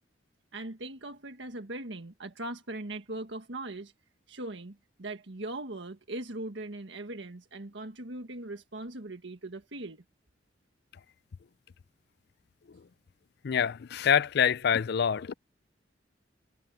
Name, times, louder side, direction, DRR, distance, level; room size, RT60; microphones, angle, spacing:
voice 1, 0.5-3.9 4.3-10.0, right 2 dB, 70° right, 1.6 m, -40 dB
voice 2, 13.4-15.3, left 8 dB, 60° left, 0.4 m, -26 dB
head